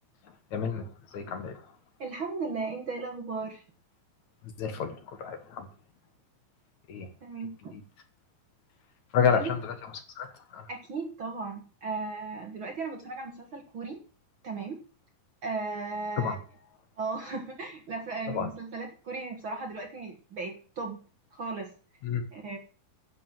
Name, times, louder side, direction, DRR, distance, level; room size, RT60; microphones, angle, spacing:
voice 1, 0.5-1.7 4.6-5.7 6.9-7.1 7.7-7.8 9.1-10.7 16.2-16.4 18.3-18.5 22.0-22.2, left 7 dB, 60° left, 8 dB, 2.5 m, -30 dB
voice 2, 2.0-3.6 7.2-7.8 9.3-9.6 10.7-14.0 14.4-14.8 15.4-16.4 17.0-21.0 21.3-21.7 22.3-22.6, right 4 dB, 45° right, 3 dB, 1.8 m, -36 dB
11.0 x 7.7 x 7.5 m, 0.39 s
omnidirectional pair, 4.2 m